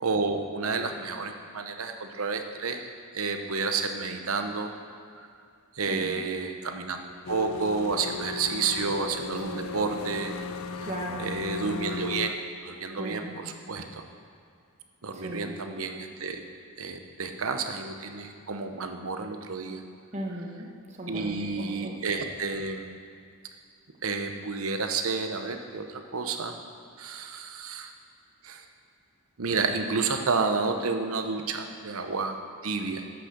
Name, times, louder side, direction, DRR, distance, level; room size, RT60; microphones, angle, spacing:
voice 1, 0.0-4.7 5.2-5.3 5.8-10.4 11.2-12.4 12.6-14.0 15.0-16.4 16.8-19.8 21.1-22.8 24.0-26.5 27.0-27.9 28.4-28.6 29.4-32.4 32.6-33.0, right 4 dB, 70° right, 6 dB, 0.9 m, -30 dB
voice 2, 5.9-6.2 9.5-9.7 10.8-11.3 13.0-13.5 15.1-15.6 20.1-22.0, right 1 dB, 30° right, 0 dB, 1.3 m, -37 dB
sound 1, 7.2-12.3, left 4 dB, 65° left, 0.4 m, -36 dB
10.5 x 6.4 x 6.7 m, 2.3 s
head